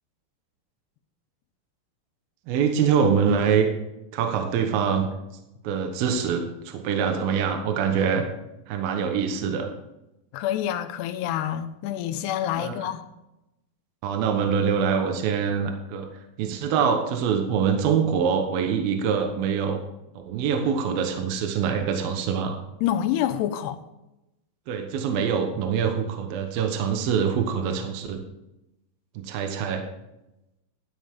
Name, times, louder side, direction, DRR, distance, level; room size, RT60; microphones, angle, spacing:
voice 1, 2.5-3.7 4.1-5.1 5.6-8.2 8.7-9.7 12.6-12.7 14.0-16.1 16.4-19.8 20.3-22.6 24.7-28.2 29.2-29.8, right 6 dB, 70° right, 4 dB, 2.8 m, -24 dB
voice 2, 10.3-13.0 22.8-23.8, left 11 dB, 85° left, 8 dB, 2.7 m, -27 dB
12.5 x 10.0 x 3.7 m, 0.93 s
omnidirectional pair, 4.8 m